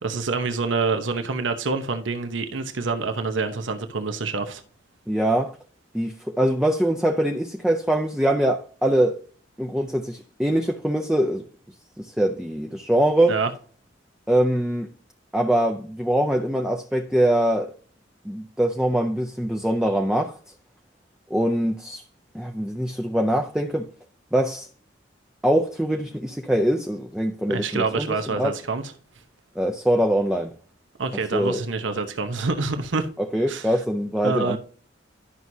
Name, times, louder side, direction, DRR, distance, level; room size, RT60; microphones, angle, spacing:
voice 1, 0.0-4.6 13.3-13.5 27.5-28.8 31.0-33.1 33.5-33.7 34.2-34.6, right 4 dB, 75° right, 0.9 m, -26 dB
voice 2, 5.1-5.6 5.9-9.2 9.6-11.5 12.0-13.4 14.3-14.9 15.3-17.7 18.2-20.3 21.3-22.0 22.3-23.9 24.3-24.7 25.4-28.5 29.6-30.5 31.3-31.6 33.2-34.6, right 1 dB, 5° right, 0.5 m, -23 dB
11.5 x 6.1 x 2.7 m
head